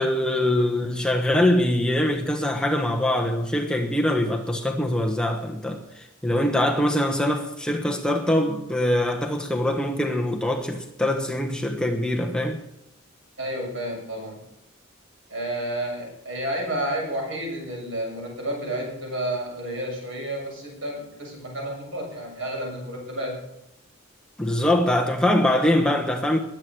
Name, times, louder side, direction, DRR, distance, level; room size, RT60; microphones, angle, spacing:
voice 1, 0.0-12.6 24.4-26.4, left 1 dB, 5° left, 1.2 m, -23 dB
voice 2, 13.4-14.4 15.3-23.4, right 1 dB, 75° right, 7.3 m, -31 dB
20.5 x 8.4 x 6.2 m
head